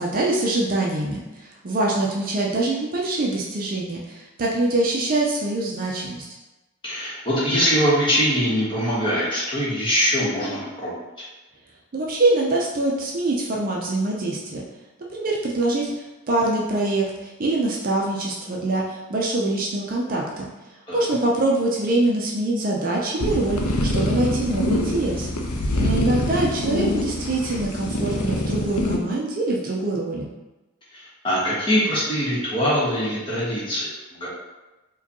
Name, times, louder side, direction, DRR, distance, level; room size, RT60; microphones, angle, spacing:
voice 1, 0.0-6.3 11.9-14.6 15.1-20.5 20.9-25.3 25.8-30.3, right 2 dB, 40° right, -2 dB, 0.4 m, -24 dB
voice 2, 6.8-10.9 20.9-21.0 25.6-26.0 30.9-34.3, equal, 20° left, -8 dB, 1.1 m, -23 dB
sound 1, 23.2-29.0, left 1 dB, 85° left, 0.5 m, -24 dB
4.8 x 2.2 x 2.8 m, 1.1 s
head